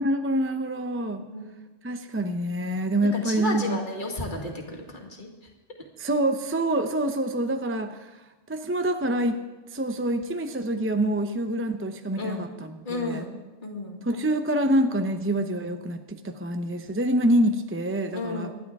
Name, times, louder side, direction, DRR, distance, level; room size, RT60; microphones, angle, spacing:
voice 1, 0.0-1.3 1.8-3.8 6.0-8.1 8.5-9.4 9.7-13.2 14.0-18.5, right 1 dB, 15° right, 6 dB, 0.5 m, -26 dB
voice 2, 3.0-5.3 12.2-12.4 12.9-14.0 18.1-18.5, left 2 dB, 40° left, 0 dB, 2.2 m, -32 dB
25.0 x 11.0 x 3.6 m, 1.2 s
omnidirectional pair, 1.3 m